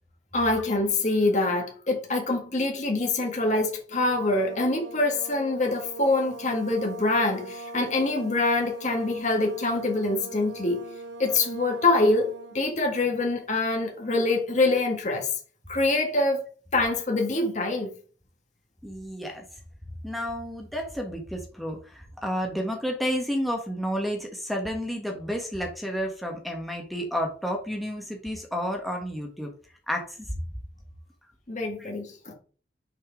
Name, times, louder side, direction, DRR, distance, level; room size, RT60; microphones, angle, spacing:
voice 1, 0.3-10.8 11.2-15.3 15.7-16.4 16.7-17.9 31.5-32.3, left 2 dB, 40° left, 1.7 m, -25 dB
sound 1, 3.9-12.6, right 2 dB, 75° right, 0.8 m, -41 dB
voice 2, 18.8-19.4 20.0-29.5 29.9-30.2 31.8-31.9, equal, ahead, 1.3 m, -31 dB
6.5 x 4.5 x 4.8 m
head